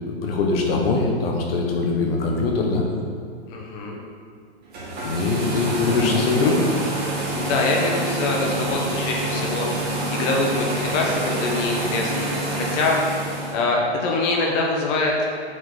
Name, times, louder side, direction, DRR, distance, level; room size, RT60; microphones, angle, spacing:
voice 1, 0.1-2.9 5.0-6.6, left 3 dB, 55° left, 0 dB, 1.4 m, -22 dB
voice 2, 3.5-4.0 7.3-15.1, left 3 dB, 40° left, 0 dB, 1.2 m, -24 dB
sound 1, 4.6-13.5, right 2 dB, 30° right, 2.0 m, -27 dB
6.0 x 5.0 x 5.9 m, 2.2 s
hypercardioid pair, 120°, 34 cm